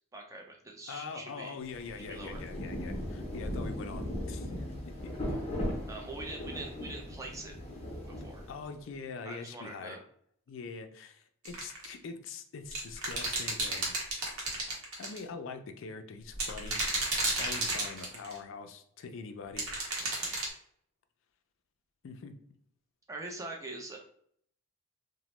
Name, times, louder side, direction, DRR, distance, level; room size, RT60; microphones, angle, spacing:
voice 1, 0.1-1.6 2.0-2.4 5.9-7.5 8.2-8.5 9.3-10.0 20.0-20.3 23.1-24.0, right 2 dB, 15° right, 1 dB, 0.4 m, -43 dB
voice 2, 0.9-5.1 8.5-10.0 10.5-13.9 15.0-16.8 17.4-19.7 22.0-22.4, left 4 dB, 60° left, 7 dB, 0.3 m, -43 dB
Rain, 1.6-8.9, left 1 dB, 25° left, 0.7 m, -38 dB
sound 1, 11.4-11.9 12.7-15.2 16.3-18.4 19.6-20.5, right 2 dB, 75° right, 0.9 m, -32 dB
2.9 x 2.0 x 3.0 m, 0.65 s
head